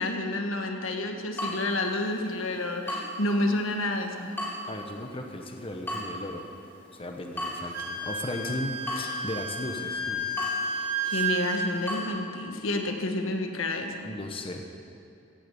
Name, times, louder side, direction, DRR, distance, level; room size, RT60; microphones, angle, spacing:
voice 1, 0.0-4.3 10.8-14.1, left 2 dB, 80° left, 4 dB, 1.4 m, -29 dB
Water tap faucet / Drip, 1.3-12.0, equal, 10° left, 3.2 m, -39 dB
voice 2, 4.7-6.5 6.9-10.3 11.1-11.3 14.0-14.6, left 1 dB, 25° left, 3 dB, 1.0 m, -36 dB
Wind instrument woodwind instrument, 7.7-11.7, right 2 dB, 50° right, 3.5 m, -32 dB
15.0 x 8.8 x 8.4 m, 2.6 s
head